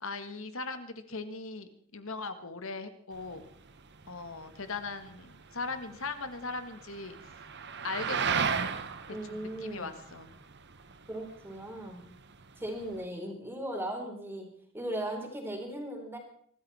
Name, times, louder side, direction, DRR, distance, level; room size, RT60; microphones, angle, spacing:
voice 1, 0.0-3.4 4.1-7.2 7.8-8.5 9.1-10.4, left 3 dB, 65° left, 10 dB, 1.6 m, -39 dB
sound 1, 3.1-13.0, right 6 dB, 50° right, 1.1 m, -37 dB
voice 2, 9.1-9.9 11.1-12.1 12.6-14.5 14.7-16.2, right 1 dB, 10° right, 2 dB, 3.9 m, -37 dB
24.0 x 13.5 x 4.3 m, 0.62 s
head